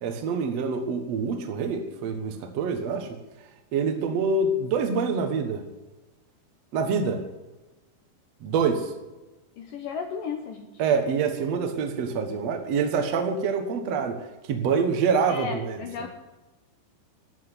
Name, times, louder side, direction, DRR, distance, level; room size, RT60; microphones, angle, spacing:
voice 1, 0.0-3.1 3.7-5.7 6.7-7.2 8.4-8.9 10.8-14.2 14.5-15.8, right 5 dB, 80° right, 6 dB, 1.5 m, -26 dB
voice 2, 9.6-10.7 15.3-16.1, left 6 dB, 75° left, 5 dB, 2.0 m, -34 dB
13.5 x 8.2 x 9.8 m, 1.1 s
omnidirectional pair, 5.3 m